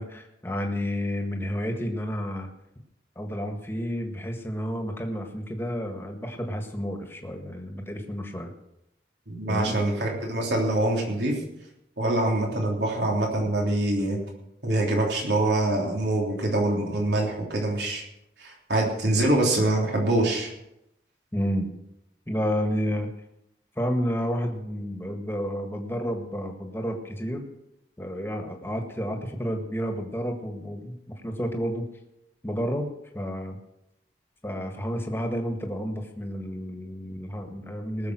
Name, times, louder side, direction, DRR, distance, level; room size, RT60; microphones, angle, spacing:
voice 1, 0.0-2.5 3.2-8.5 9.5-9.8 21.3-21.7 22.3-23.1 23.8-27.4 28.0-31.8 32.4-32.9 33.1-33.6 34.4-38.1, equal, 15° left, 3 dB, 1.6 m, -30 dB
voice 2, 9.3-11.4 12.0-14.2 14.6-18.0 18.4-20.5, right 1 dB, 80° right, -1 dB, 3.5 m, -24 dB
19.0 x 7.2 x 6.2 m, 0.84 s
head